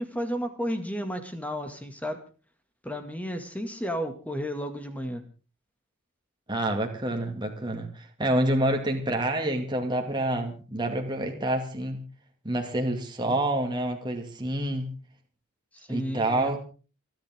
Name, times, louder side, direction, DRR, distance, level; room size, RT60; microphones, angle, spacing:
voice 1, 0.0-2.2 2.8-5.2 13.2-13.4 15.9-16.6, equal, 5° left, 7 dB, 2.1 m, -32 dB
voice 2, 6.5-12.0 12.4-14.9 15.9-16.6, right 1 dB, 20° right, 2 dB, 2.3 m, -28 dB
29.0 x 10.5 x 3.7 m, 0.37 s
head